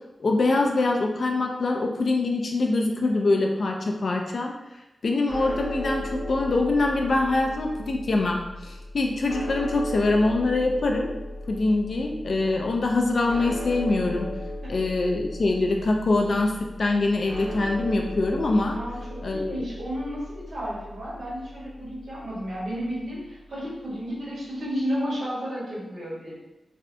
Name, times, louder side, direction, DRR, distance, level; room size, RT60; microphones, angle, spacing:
voice 1, 0.2-4.5 5.0-11.1 11.5-14.3 14.7-16.5 16.8-18.8 19.2-19.6, left 2 dB, 50° left, 1 dB, 0.4 m, -24 dB
sound 1, 5.3-23.5, left 1 dB, 5° left, 0.8 m, -37 dB
voice 2, 18.7-26.4, equal, 70° right, -8 dB, 1.5 m, -32 dB
3.1 x 2.7 x 2.6 m, 0.99 s
wide cardioid pair, 170°, 0 cm